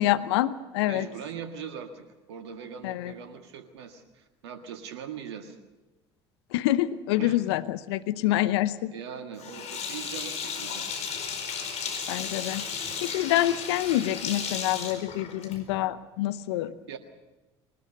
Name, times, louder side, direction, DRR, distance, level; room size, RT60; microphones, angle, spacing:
voice 1, 0.0-1.1 2.8-3.1 6.5-8.9 12.1-16.7, left 14 dB, 70° left, 13 dB, 0.9 m, -27 dB
voice 2, 0.9-5.6 7.2-7.4 8.9-10.9 16.9-17.0, right 7 dB, 75° right, 6 dB, 1.8 m, -41 dB
Sink (filling or washing), 9.4-15.8, left 6 dB, 50° left, 4.7 m, -34 dB
21.0 x 19.5 x 6.6 m, 1.1 s
hypercardioid pair, 65°, 14 cm